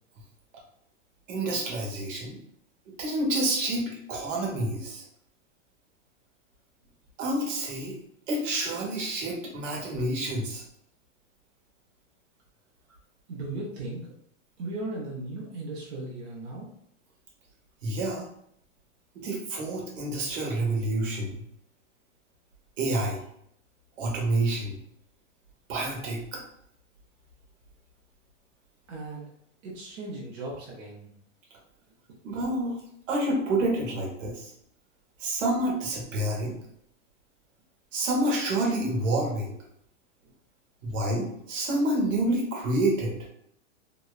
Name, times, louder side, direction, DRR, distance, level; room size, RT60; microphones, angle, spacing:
voice 1, 1.3-2.4 3.0-5.0 7.2-8.0 8.3-10.6 17.8-18.2 19.1-21.4 22.8-23.2 24.0-24.7 25.7-26.4 32.2-32.8 33.1-34.5 35.2-36.6 37.9-39.5 40.8-43.2, right 1 dB, 80° right, -2 dB, 1.0 m, -28 dB
voice 2, 13.3-14.1 14.6-16.7 28.9-29.3 29.6-31.1 40.2-40.3, right 2 dB, 60° right, -4 dB, 0.7 m, -37 dB
2.9 x 2.0 x 2.3 m, 0.72 s
supercardioid pair, 165°, 37 cm